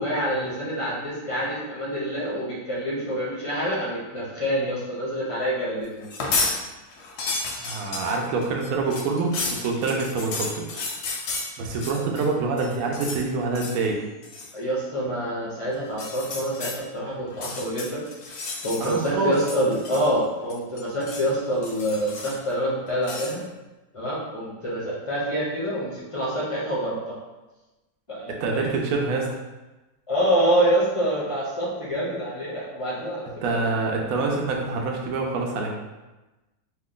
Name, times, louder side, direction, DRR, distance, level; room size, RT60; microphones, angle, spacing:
voice 1, 0.0-6.1 14.5-18.0 18.3-23.4 23.9-27.1 28.1-28.7 30.1-33.7, equal, 50° left, -7 dB, 0.4 m, -26 dB
sound 1, 6.0-6.6 6.9-12.3 12.6-13.2 13.5-13.9 14.2-14.5 15.9-16.8 17.3-19.0 19.3-20.2 20.5-21.3 21.6-22.5 23.0-23.4, left 3 dB, 85° left, 1.2 m, -32 dB
voice 2, 7.6-10.8 11.6-14.0 18.8-19.4 28.4-29.3 33.4-35.7, right 3 dB, 70° right, 0 dB, 1.0 m, -26 dB
3.0 x 2.2 x 3.7 m, 1.1 s
omnidirectional pair, 1.6 m